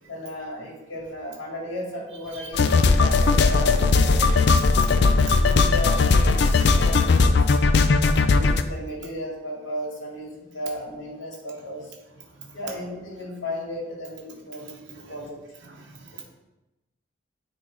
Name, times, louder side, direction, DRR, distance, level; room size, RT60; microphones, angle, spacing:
voice 1, 0.1-4.4 5.4-7.5 8.1-11.9 12.5-15.4, left 1 dB, 80° left, -3 dB, 2.3 m, -35 dB
sound 1, 2.5-8.6, left 4 dB, 60° left, 0.4 m, -18 dB
voice 2, 4.8-5.3 12.3-12.6 14.6-15.1 15.6-16.2, right 6 dB, 70° right, 0 dB, 0.9 m, -44 dB
9.4 x 3.4 x 3.9 m, 0.98 s
head